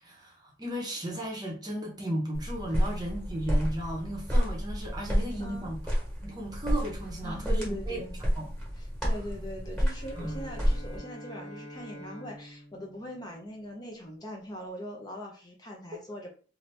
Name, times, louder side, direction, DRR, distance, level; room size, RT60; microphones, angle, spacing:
voice 1, 0.0-5.8 6.2-8.0 8.4-8.5 10.2-10.5, right 1 dB, 20° right, 0.8 m, -35 dB
sound 1, 2.3-11.0, equal, 5° left, 1.3 m, -30 dB
voice 2, 5.4-5.7 7.2-8.2 8.8-16.3, equal, 20° left, 0.6 m, -41 dB
Bowed string instrument, 9.8-14.0, equal, 70° left, 1.0 m, -47 dB
2.7 x 2.6 x 3.3 m
head